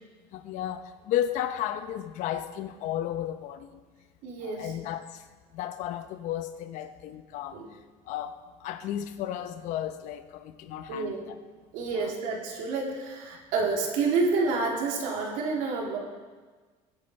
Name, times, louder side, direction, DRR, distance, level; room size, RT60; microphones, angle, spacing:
voice 1, 0.3-3.7 4.4-5.2 5.5-7.6 8.1-11.3 11.9-12.1, left 11 dB, 65° left, 9 dB, 1.1 m, -33 dB
voice 2, 4.2-4.7 7.5-7.7 10.9-11.2 11.7-16.0, right 4 dB, 75° right, -1 dB, 3.9 m, -29 dB
21.5 x 9.1 x 5.5 m, 1.4 s
cardioid pair, 130°, 14 cm